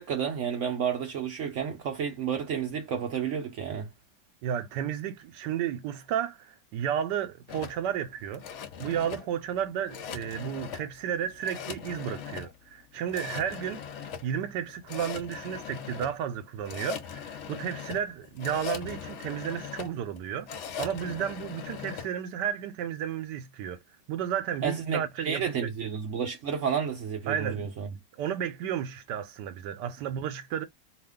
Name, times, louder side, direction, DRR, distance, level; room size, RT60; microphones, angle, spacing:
voice 1, 0.0-3.9 24.6-27.9, right 7 dB, 65° right, 0.7 m, -31 dB
voice 2, 4.4-8.5 8.8-13.8 14.2-20.5 20.8-23.8 24.1-25.7 27.3-27.7 28.2-30.6, right 9 dB, 85° right, 1.2 m, -32 dB
sound 1, 7.5-22.1, left 7 dB, 75° left, 0.6 m, -40 dB
2.8 x 2.4 x 3.5 m
omnidirectional pair, 1.8 m